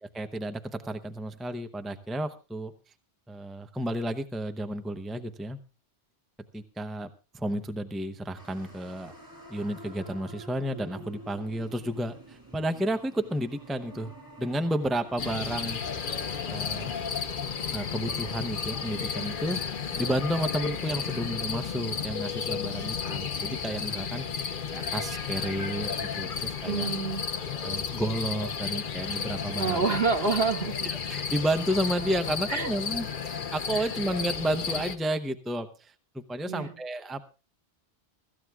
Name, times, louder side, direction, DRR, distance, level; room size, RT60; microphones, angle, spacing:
voice 1, 0.0-2.7 3.3-5.6 6.5-9.1 9.5-14.1 14.4-15.8 16.5-17.0 17.7-19.6 19.9-26.9 27.5-29.8 30.8-37.3, right 1 dB, ahead, 8 dB, 0.7 m, -32 dB
sound 1, 8.3-26.5, right 1 dB, 20° right, 4.6 m, -50 dB
sound 2, 15.2-35.0, left 6 dB, 55° left, 1.0 m, -33 dB
voice 2, 26.7-27.2 29.6-30.9 32.5-32.7 36.5-36.7, right 4 dB, 65° right, 2 dB, 2.2 m, -27 dB
24.0 x 14.0 x 2.4 m, 0.33 s
omnidirectional pair, 1.1 m